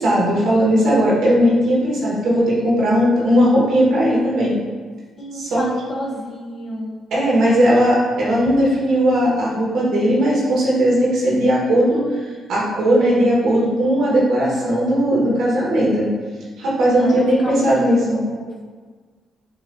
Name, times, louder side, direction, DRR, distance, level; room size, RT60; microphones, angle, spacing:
voice 1, 0.0-4.5 5.3-5.7 7.1-12.0 12.5-16.1 16.6-18.2, equal, 75° right, -5 dB, 1.3 m, -17 dB
voice 2, 5.2-7.0 17.0-17.9 18.1-18.6, left 1 dB, 35° left, -3 dB, 0.9 m, -30 dB
6.8 x 2.5 x 2.6 m, 1.5 s
cardioid pair, 90°, 0 cm